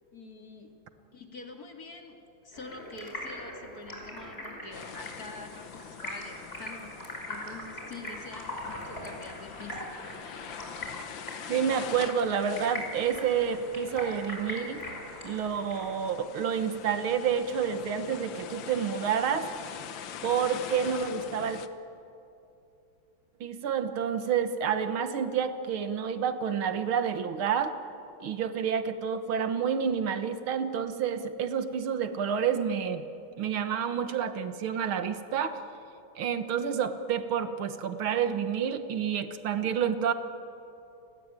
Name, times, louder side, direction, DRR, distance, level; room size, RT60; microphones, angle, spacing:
voice 1, 0.1-0.7 1.1-10.0, left 3 dB, 45° left, 3 dB, 2.9 m, -46 dB
Stream, 2.5-15.9, left 1 dB, 25° left, 5.7 m, -41 dB
sound 1, 4.7-21.7, left 8 dB, 70° left, 1.7 m, -44 dB
voice 2, 11.5-14.8 15.2-19.5 20.2-21.6 23.4-27.8 28.2-33.1 33.4-35.6 36.2-40.1, right 7 dB, 80° right, 9 dB, 2.1 m, -29 dB
29.5 x 20.5 x 9.0 m, 2.7 s
omnidirectional pair, 2.3 m